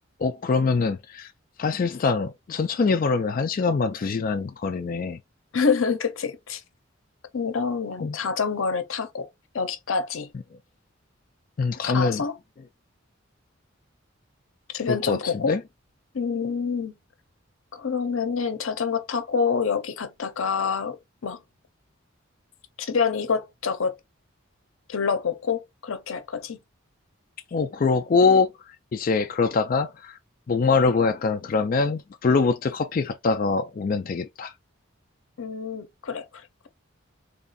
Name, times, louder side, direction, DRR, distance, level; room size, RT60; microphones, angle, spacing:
voice 1, 0.2-1.3 1.6-5.2 8.0-8.2 11.6-12.3 14.9-15.6 27.5-28.5 28.9-30.2 30.5-34.5, left 4 dB, 45° left, 0.3 m, -23 dB
voice 2, 5.5-6.6 7.3-9.3 9.5-10.3 11.8-12.3 14.7-15.5 16.1-16.9 17.7-21.0 21.2-21.4 22.8-23.9 24.9-26.6 35.4-36.7, left 5 dB, 85° left, 0.6 m, -27 dB
3.4 x 2.4 x 3.9 m
head